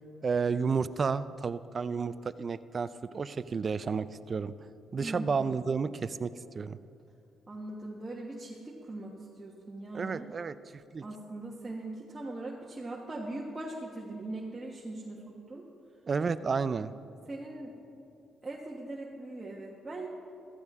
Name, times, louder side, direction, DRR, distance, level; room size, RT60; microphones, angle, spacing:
voice 1, 0.2-4.5 4.9-6.8 9.9-10.6 10.9-11.0 16.1-16.9, right 5 dB, 40° right, 15 dB, 0.4 m, -31 dB
voice 2, 5.0-5.7 7.5-10.3 11.0-15.6 17.3-17.7 18.4-20.1, right 2 dB, 25° right, -3 dB, 1.3 m, -40 dB
15.0 x 14.0 x 3.6 m, 2.7 s
cardioid pair, 90°, 0 cm